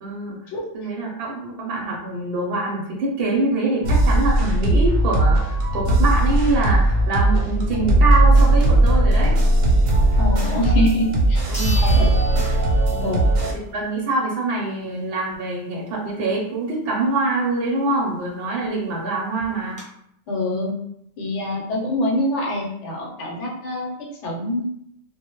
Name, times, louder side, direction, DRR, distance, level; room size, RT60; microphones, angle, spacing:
voice 1, 0.0-0.5 0.7-9.4 11.5-12.4 12.9-13.1 13.4-19.8, right 2 dB, 60° right, -3 dB, 0.7 m, -25 dB
sound 1, 3.8-13.5, right 1 dB, 90° right, 1.0 m, -18 dB
Brass instrument, 7.6-13.5, right 5 dB, 50° left, 0.4 m, -38 dB
voice 2, 10.2-11.4 11.8-12.1 13.0-13.3 20.3-20.7 21.2-24.6, left 1 dB, 75° left, -1 dB, 0.9 m, -25 dB
sound 2, 10.7-10.8 11.5-13.3 13.7-13.8 18.4-18.5 18.7-18.8 19.4-19.8, equal, 5° left, 0.7 m, -35 dB
2.2 x 2.0 x 2.9 m, 0.74 s
omnidirectional pair, 1.3 m